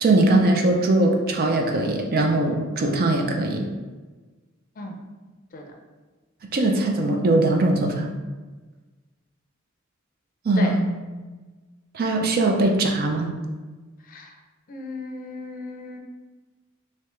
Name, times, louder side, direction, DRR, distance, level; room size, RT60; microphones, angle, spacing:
voice 1, 0.0-3.6 6.5-8.1 10.4-10.9 11.9-13.3, right 2 dB, 45° right, 2 dB, 0.5 m, -21 dB
voice 2, 14.0-14.4 14.7-16.0, left 2 dB, 40° left, 2 dB, 0.5 m, -35 dB
3.4 x 2.8 x 3.1 m, 1.3 s
head